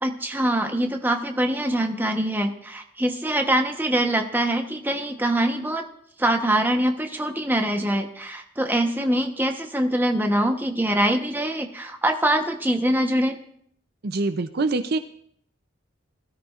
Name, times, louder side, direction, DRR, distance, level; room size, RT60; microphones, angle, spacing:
voice 1, 0.0-5.9 6.2-13.4, right 1 dB, 10° right, 4 dB, 1.0 m, -24 dB
voice 2, 14.0-15.0, right 3 dB, 55° right, 10 dB, 0.5 m, -24 dB
20.5 x 13.0 x 2.5 m, 0.68 s
head